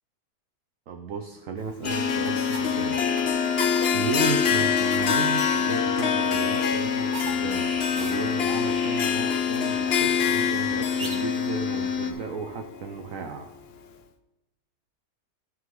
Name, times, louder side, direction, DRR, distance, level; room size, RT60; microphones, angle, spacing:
voice 1, 0.9-3.0 3.9-13.5, right 5 dB, 55° right, 4 dB, 1.1 m, -34 dB
Harp, 1.8-13.1, left 7 dB, 60° left, 0.6 m, -27 dB
sound 1, 1.8-12.1, left 7 dB, 30° left, 0.9 m, -28 dB
sound 2, 2.2-11.5, right 2 dB, 25° right, 1.5 m, -42 dB
15.0 x 6.1 x 3.8 m, 0.98 s
omnidirectional pair, 1.8 m